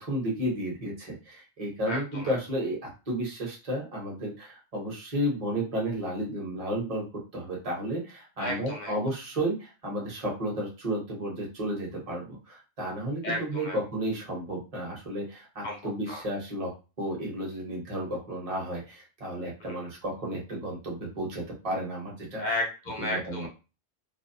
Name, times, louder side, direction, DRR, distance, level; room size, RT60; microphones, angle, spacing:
voice 1, 0.0-16.7 17.0-22.4 23.0-23.5, right 1 dB, 30° right, -3 dB, 0.9 m, -32 dB
voice 2, 1.8-2.3 8.4-8.9 13.2-13.8 15.6-16.2 19.6-19.9 22.4-23.5, left 1 dB, 55° left, 0 dB, 0.5 m, -33 dB
2.6 x 2.1 x 2.6 m, 0.31 s
omnidirectional pair, 1.3 m